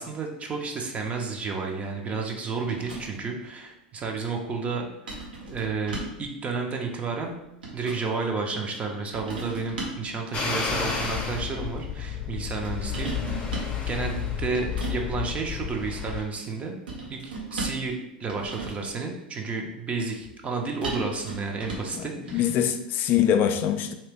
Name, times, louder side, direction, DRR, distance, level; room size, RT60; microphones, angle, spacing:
voice 1, 0.0-7.4 7.7-13.5 13.9-16.8 17.1-17.9 18.2-22.5, right 4 dB, 25° right, 2 dB, 0.6 m, -31 dB
sound 1, 2.7-3.3 5.1-6.3 7.3-8.1 9.1-10.1 10.8-11.3 12.6-13.8 14.5-15.0 16.9-17.9 18.3-18.9 20.8-22.0 22.3-22.5, right 2 dB, 80° right, 0.9 m, -37 dB
sound 2, 10.3-16.2, left 6 dB, 25° left, 0.8 m, -31 dB
voice 2, 21.9-23.9, left 9 dB, 40° left, 8 dB, 0.4 m, -24 dB
2.9 x 2.8 x 3.4 m, 0.86 s
hypercardioid pair, 90°, 5 cm